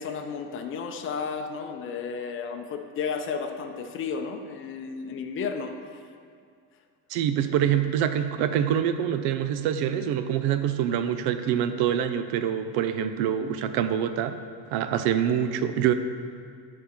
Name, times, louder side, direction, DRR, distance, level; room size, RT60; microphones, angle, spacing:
voice 1, 0.0-5.7, left 5 dB, 35° left, 5 dB, 0.6 m, -33 dB
voice 2, 7.1-14.4 14.7-15.9, right 9 dB, 80° right, 10 dB, 0.6 m, -25 dB
11.5 x 4.3 x 4.4 m, 2.2 s
cardioid pair, 140°, 38 cm